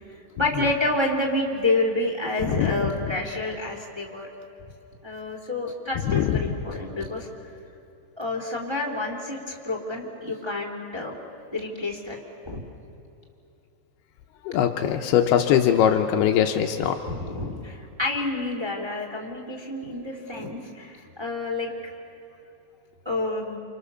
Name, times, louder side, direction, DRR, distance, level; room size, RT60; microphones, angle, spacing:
voice 1, 0.3-4.3 5.0-7.3 8.2-11.2 11.5-12.2 12.4-12.6 17.1-21.7 23.0-23.6, left 2 dB, 10° right, -1 dB, 2.1 m, -28 dB
voice 2, 2.4-3.2 6.0-6.6 14.4-17.0, left 9 dB, 85° left, 4 dB, 2.3 m, -22 dB
29.5 x 27.5 x 7.1 m, 2.8 s
omnidirectional pair, 5.9 m